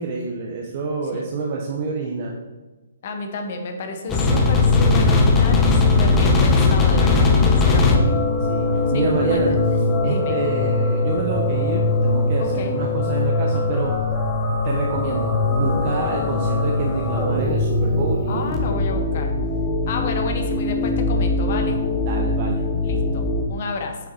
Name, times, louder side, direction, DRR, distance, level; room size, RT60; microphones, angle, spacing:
voice 1, 0.0-2.4 8.5-9.5 10.0-14.0 14.6-18.8 22.0-22.6, right 4 dB, 40° right, -1 dB, 1.0 m, -27 dB
voice 2, 3.0-8.2 8.9-9.4 9.7-10.3 12.4-12.8 18.3-19.3 19.9-21.8 22.8-24.0, left 3 dB, 50° left, 4 dB, 1.1 m, -31 dB
sound 1, 4.1-23.5, left 3 dB, 15° left, 1.1 m, -20 dB
7.8 x 4.8 x 4.4 m, 1.2 s
hypercardioid pair, 140°, 0 cm